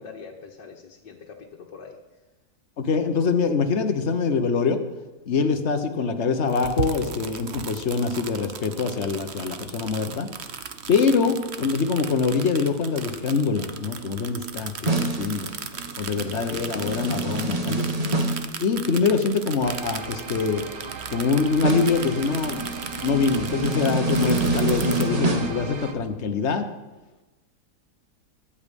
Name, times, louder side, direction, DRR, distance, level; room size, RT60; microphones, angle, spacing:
voice 1, 0.0-2.0, left 5 dB, 85° left, -2 dB, 2.1 m, -44 dB
voice 2, 2.8-4.8 5.3-10.3 10.9-15.5 16.0-17.9 18.6-20.6 21.1-22.7 23.0-26.7, left 5 dB, 45° left, 7 dB, 1.4 m, -24 dB
sound 1, 6.5-25.0, right 7 dB, 45° right, 0.9 m, -37 dB
sound 2, 14.9-18.5 21.6-25.5, right 2 dB, 25° right, 1.3 m, -27 dB
sound 3, 19.6-25.9, right 5 dB, 80° right, 1.9 m, -38 dB
23.5 x 8.7 x 5.4 m, 1.1 s
omnidirectional pair, 1.8 m